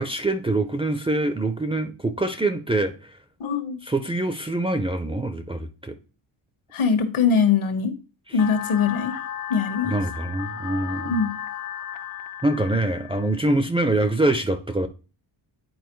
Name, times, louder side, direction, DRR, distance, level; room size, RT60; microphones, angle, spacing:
voice 1, 0.0-3.0 3.9-6.0 9.9-11.2 12.4-14.9, right 2 dB, 10° right, 0.4 m, -24 dB
voice 2, 3.4-3.8 6.7-7.9 8.3-9.1 9.5-9.9 11.0-11.3, left 6 dB, 80° left, 1.5 m, -22 dB
sound 1, 8.4-13.4, left 10 dB, 45° left, 0.4 m, -34 dB
10.5 x 4.5 x 3.0 m
wide cardioid pair, 180°, 48 cm